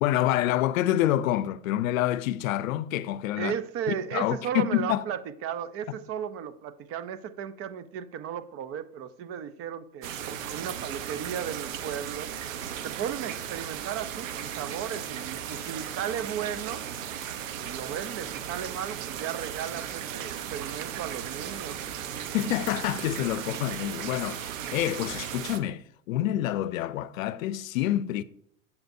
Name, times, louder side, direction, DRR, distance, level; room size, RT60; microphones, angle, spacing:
voice 1, 0.0-3.5 4.1-5.0 22.3-28.2, left 13 dB, 80° left, 0.5 m, -27 dB
voice 2, 3.4-10.1 10.5-12.3 12.8-16.8 17.6-21.8, right 9 dB, 35° right, 0.5 m, -35 dB
sound 1, 10.0-25.6, right 9 dB, 75° right, 0.9 m, -36 dB
7.7 x 7.1 x 2.6 m
hypercardioid pair, 110°, 40 cm